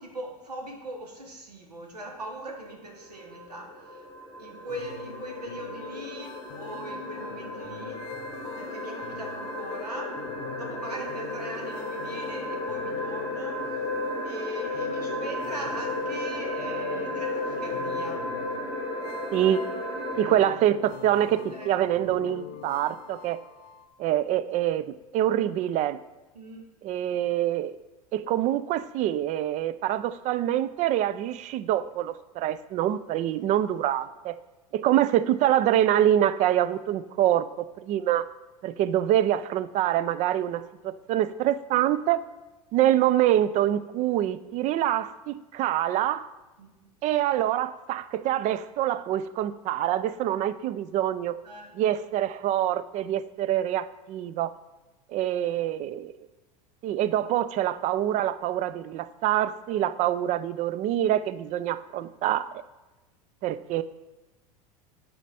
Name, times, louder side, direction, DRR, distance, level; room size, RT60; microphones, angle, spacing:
voice 1, 0.0-4.0 4.4-8.1 8.6-10.2 10.5-13.6 14.2-18.2 21.5-21.8 26.3-26.7 46.6-46.9 51.4-51.8, right 1 dB, 90° right, 1 dB, 1.3 m, -40 dB
sound 1, 2.1-20.4, left 1 dB, ahead, 2.0 m, -34 dB
sound 2, 4.7-23.9, left 9 dB, 55° left, 0.7 m, -43 dB
voice 2, 20.2-23.4 24.0-26.0 26.8-27.8 28.1-34.4 34.7-37.5 37.8-38.2 38.6-42.2 42.7-46.3 47.0-51.4 51.8-54.5 55.1-56.1 56.8-62.5 63.4-63.8, right 12 dB, 40° right, 15 dB, 0.4 m, -25 dB
8.1 x 4.3 x 4.2 m, 1.1 s
hypercardioid pair, 85°, 20 cm